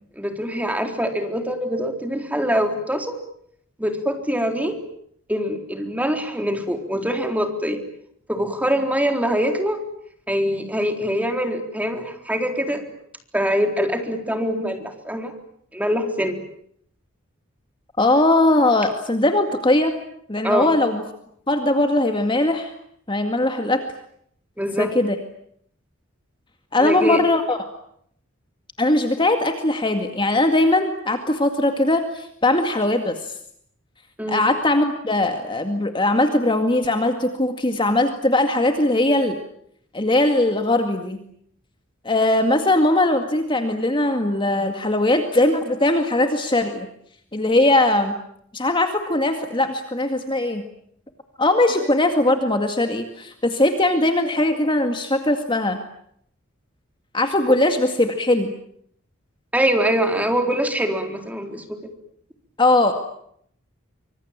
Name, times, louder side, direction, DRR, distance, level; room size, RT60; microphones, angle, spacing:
voice 1, 0.1-3.2 3.8-4.8 5.3-7.8 8.3-9.8 10.3-12.8 13.3-15.3 15.7-16.4 20.4-20.7 24.6-24.9 26.8-27.2 34.2-34.4 57.5-57.6 59.5-61.8, equal, 5° right, 5 dB, 3.9 m, -23 dB
voice 2, 18.0-19.9 20.3-21.0 21.5-22.7 23.1-23.8 24.8-25.2 26.7-27.6 28.8-33.3 34.3-39.4 39.9-41.2 42.0-46.9 47.3-48.2 48.5-50.6 51.4-55.8 57.1-58.5 62.6-62.9, left 1 dB, 25° left, 6 dB, 2.1 m, -20 dB
25.5 x 25.5 x 8.9 m, 0.69 s
head